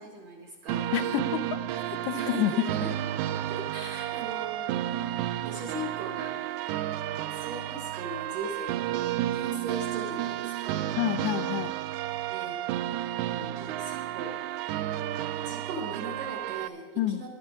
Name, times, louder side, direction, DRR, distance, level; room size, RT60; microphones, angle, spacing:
voice 1, 0.0-0.9 2.1-2.9 3.5-5.1 5.4-6.4 7.3-10.8 12.3-12.9 13.3-14.4 15.2-17.3, right 2 dB, 70° right, 1 dB, 1.5 m, -39 dB
sound 1, 0.7-16.7, right 13 dB, 90° right, 2.2 m, -32 dB
voice 2, 0.9-1.6 2.0-2.5 11.0-11.7 17.0-17.2, left 11 dB, 85° left, 12 dB, 2.2 m, -28 dB
18.5 x 11.5 x 3.6 m, 1.3 s
omnidirectional pair, 5.1 m